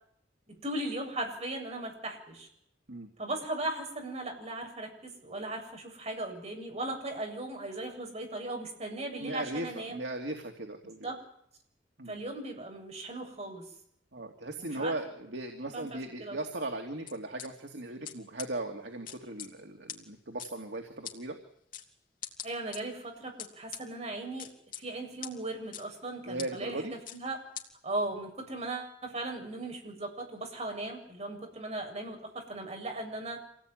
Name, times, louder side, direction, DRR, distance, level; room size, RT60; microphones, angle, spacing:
voice 1, 0.5-2.5 3.2-10.0 11.0-11.2 12.1-13.7 14.6-15.0 15.6-16.4 22.4-24.5 24.8-27.4 27.8-33.4, right 2 dB, 35° right, 2 dB, 7.6 m, -38 dB
voice 2, 9.2-11.1 12.0-12.1 14.1-21.4 26.3-26.9, right 2 dB, 80° right, 3 dB, 2.8 m, -38 dB
sound 1, 17.1-17.5 18.0-18.1 18.4-18.5 19.1-19.5 19.9-20.0 20.4-20.5 21.0-21.2 21.7-21.8 22.2-22.8 23.4-23.8 24.4-24.8 25.2-25.3 25.7-25.8 26.4-26.5 27.1-27.2 27.6-27.7, left 10 dB, 50° left, 3.1 m, -40 dB
27.0 x 18.0 x 9.3 m, 0.71 s
head